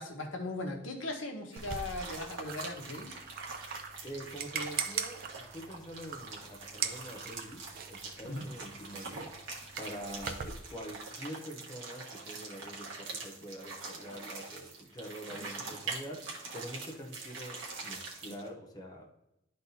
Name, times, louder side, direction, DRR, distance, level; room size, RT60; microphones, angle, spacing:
voice 1, 0.0-3.2 8.2-8.5 15.3-15.7, left 2 dB, 75° left, 2 dB, 1.2 m, -39 dB
sound 1, 1.5-18.5, right 3 dB, 65° right, 1.3 m, -44 dB
sound 2, 1.6-10.6, right 7 dB, 50° right, 0.5 m, -41 dB
voice 2, 4.0-9.3 9.8-19.1, equal, 20° left, 0 dB, 0.8 m, -45 dB
11.5 x 4.0 x 2.7 m, 0.89 s
head